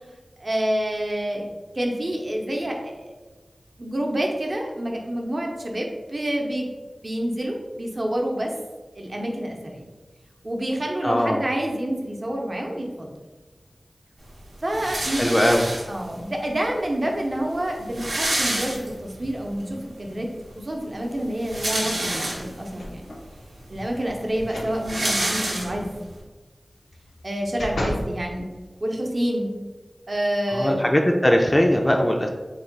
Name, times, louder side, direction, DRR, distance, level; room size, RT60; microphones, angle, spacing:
voice 1, 0.4-1.5 1.7-3.1 3.8-6.6 7.0-8.5 8.9-9.9 10.4-13.1 14.6-15.4 15.9-20.3 20.6-23.1 23.7-25.9 27.2-28.5 28.8-29.5 30.1-30.9, right 1 dB, 50° right, 0 dB, 0.6 m, -28 dB
voice 2, 11.0-11.4 15.2-15.6 30.5-32.3, equal, 25° left, 2 dB, 0.3 m, -20 dB
sound 1, 14.7-16.2 17.0-17.1 17.3-17.4 17.7-19.3 19.7-19.8 21.2-22.7 23.4-23.5 23.7-26.1, right 1 dB, 85° right, 0.7 m, -28 dB
Door opens and close, 22.8-23.3 24.4-24.8 25.2-25.3 26.9-28.2 28.7-28.8, left 1 dB, 90° left, 0.5 m, -32 dB
3.1 x 2.2 x 3.8 m, 1.3 s
wide cardioid pair, 45°, 0 cm